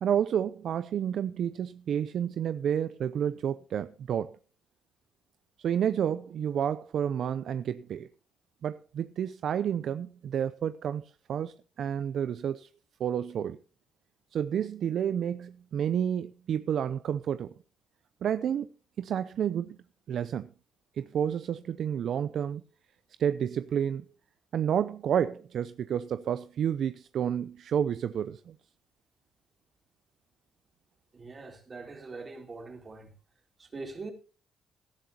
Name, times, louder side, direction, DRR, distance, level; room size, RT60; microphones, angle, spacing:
voice 1, 0.0-4.4 5.6-8.1 8.6-12.7 13.0-13.6 14.3-17.5 18.2-18.7 19.0-19.8 20.1-20.5 21.0-22.6 23.2-24.0 24.5-28.5, right 9 dB, 60° right, 0.6 m, -30 dB
voice 2, 31.1-33.1 33.6-34.1, right 3 dB, 35° right, 4.2 m, -42 dB
18.5 x 11.5 x 2.9 m
supercardioid pair, 60°, 0 cm